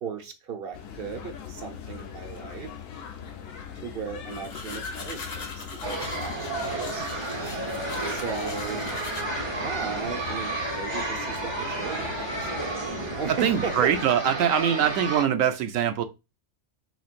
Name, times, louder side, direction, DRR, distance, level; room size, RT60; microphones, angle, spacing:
voice 1, 0.0-2.7 3.8-5.6 6.0-6.1 6.9-7.1 8.1-8.8 9.6-13.9, right 6 dB, 55° right, 0.8 m, -36 dB
sound 1, 0.7-14.0, left 7 dB, 85° left, 1.1 m, -40 dB
sound 2, 4.3-9.2, left 3 dB, 55° left, 1.0 m, -41 dB
sound 3, 5.8-15.2, right 2 dB, 25° right, 0.7 m, -32 dB
voice 2, 13.4-16.0, right 9 dB, 85° right, 1.0 m, -23 dB
4.3 x 3.1 x 2.4 m
omnidirectional pair, 1.3 m